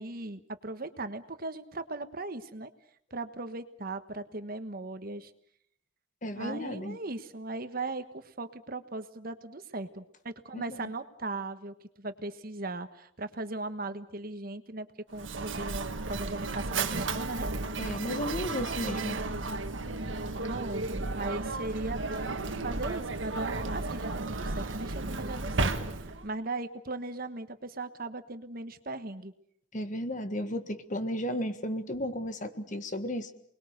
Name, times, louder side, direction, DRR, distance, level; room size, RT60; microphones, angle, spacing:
voice 1, 0.0-2.7 3.1-5.3 6.3-17.5 20.4-29.3, right 2 dB, 50° right, 10 dB, 1.4 m, -38 dB
voice 2, 6.2-7.0 10.5-10.9 17.8-19.2 29.7-33.3, equal, 40° left, 9 dB, 1.7 m, -34 dB
Mechanisms, 15.1-26.3, right 3 dB, 75° right, 1.6 m, -33 dB
29.0 x 21.0 x 6.7 m, 0.66 s
head